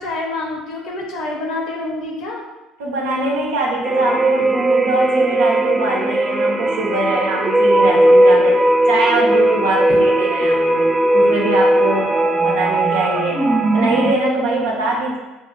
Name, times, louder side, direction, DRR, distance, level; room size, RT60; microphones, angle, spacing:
voice 1, 0.0-2.4, left 2 dB, 65° left, 0 dB, 0.9 m, -27 dB
voice 2, 2.8-8.6 8.9-13.5 13.7-15.2, right 2 dB, 75° right, -2 dB, 0.8 m, -22 dB
sound 1, 3.8-14.1, right 1 dB, 15° right, 0.4 m, -17 dB
3.3 x 2.6 x 3.8 m, 1.1 s
hypercardioid pair, 65°, 0 cm